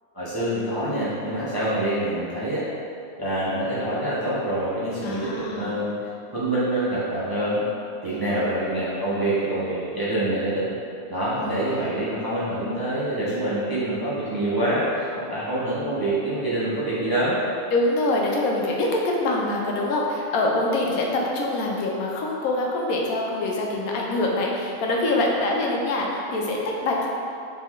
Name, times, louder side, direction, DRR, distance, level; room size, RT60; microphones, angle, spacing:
voice 1, 0.1-2.7 3.2-5.9 6.3-7.7 8.0-10.7 11.1-17.4, right 1 dB, 25° right, -11 dB, 0.5 m, -26 dB
voice 2, 5.0-5.8 8.1-8.4 11.4-12.0 17.7-27.1, left 2 dB, 90° left, -1 dB, 1.1 m, -25 dB
3.8 x 3.2 x 3.0 m, 2.5 s
omnidirectional pair, 1.5 m